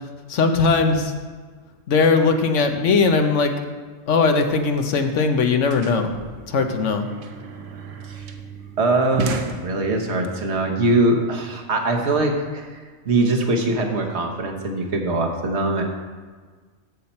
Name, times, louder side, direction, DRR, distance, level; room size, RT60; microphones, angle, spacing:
voice 1, 0.3-1.1 1.9-3.5 4.1-6.1 6.5-7.1, left 4 dB, 75° left, 6 dB, 1.2 m, -19 dB
sound 1, 5.7-10.3, right 5 dB, 80° right, 1.1 m, -34 dB
voice 2, 8.8-12.7 13.0-15.8, right 2 dB, 60° right, 2 dB, 1.4 m, -22 dB
14.0 x 5.7 x 4.3 m, 1.5 s
omnidirectional pair, 1.3 m